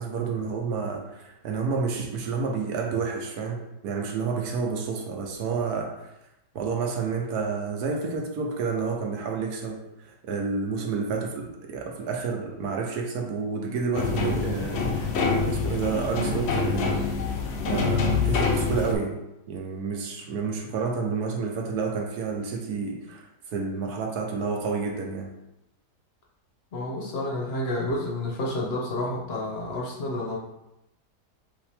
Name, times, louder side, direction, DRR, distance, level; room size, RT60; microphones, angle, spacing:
voice 1, 0.0-6.1 6.5-17.2 17.6-19.2 19.5-25.3, right 5 dB, 70° right, 1 dB, 1.2 m, -30 dB
sound 1, 13.9-18.9, left 4 dB, 85° left, 0.5 m, -26 dB
voice 2, 26.7-30.4, left 1 dB, 55° left, -2 dB, 0.7 m, -30 dB
5.2 x 2.8 x 3.4 m, 0.89 s
omnidirectional pair, 1.8 m